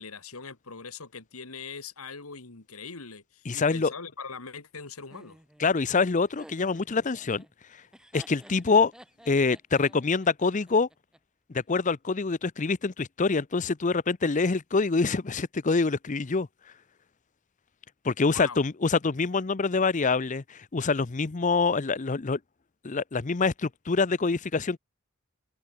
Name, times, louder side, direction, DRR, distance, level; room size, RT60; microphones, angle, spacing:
voice 1, 0.0-5.4 18.2-18.6, left 5 dB, 75° left, 2.2 m, -41 dB
voice 2, 3.5-3.9 5.6-7.4 8.1-8.9 9.3-10.9 11.5-16.5 18.0-22.4 22.8-24.8, left 4 dB, 35° left, 0.6 m, -25 dB
Laughter, 5.1-11.2, equal, 5° right, 5.9 m, -53 dB
head